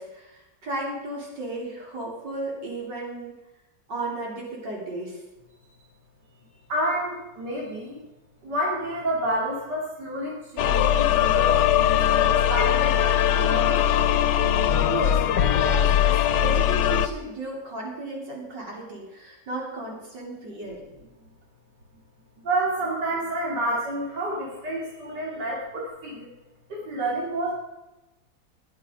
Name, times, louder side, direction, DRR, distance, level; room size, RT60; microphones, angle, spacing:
voice 1, 0.0-3.4 3.9-5.2 14.9-20.8, right 2 dB, 90° right, -3 dB, 4.2 m, -34 dB
voice 2, 6.7-8.0 8.4-14.2 21.2-21.3 22.4-26.3 26.7-27.5, right 1 dB, 75° right, -4 dB, 3.1 m, -29 dB
sound 1, 10.6-17.1, left 10 dB, 80° left, 1.3 m, -20 dB
20.0 x 7.5 x 5.2 m, 1.0 s
omnidirectional pair, 1.8 m